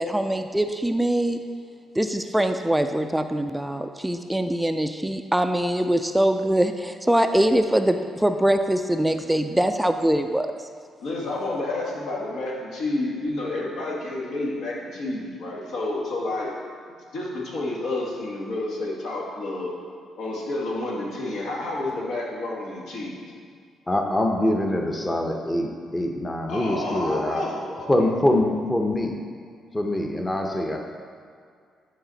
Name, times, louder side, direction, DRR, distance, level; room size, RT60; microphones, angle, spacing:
voice 1, 0.0-1.4 2.0-10.5, right 1 dB, 5° right, 7 dB, 0.3 m, -23 dB
voice 2, 11.0-16.5 17.1-19.8 20.2-23.3 26.5-27.9, left 2 dB, 85° left, -3 dB, 1.6 m, -30 dB
voice 3, 23.9-27.4 27.9-29.1 29.7-30.8, left 1 dB, 15° left, 2 dB, 0.7 m, -24 dB
10.5 x 4.2 x 4.0 m, 2.2 s
cardioid pair, 90°, 0 cm